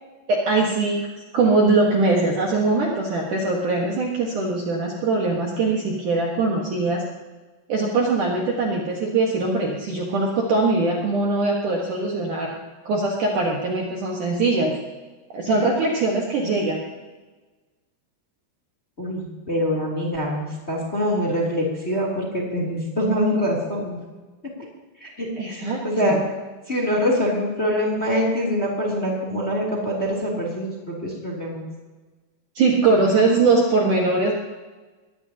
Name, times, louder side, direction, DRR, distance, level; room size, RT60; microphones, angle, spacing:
voice 1, 0.3-1.1 1.3-7.0 7.7-12.5 12.9-14.7 15.3-16.8 25.4-26.2 32.6-34.3, right 3 dB, 60° right, -2 dB, 2.3 m, -21 dB
voice 2, 19.0-24.0 25.0-26.2 26.7-31.7, equal, 15° left, -2 dB, 2.4 m, -24 dB
22.0 x 17.5 x 2.9 m, 1.3 s
omnidirectional pair, 5.3 m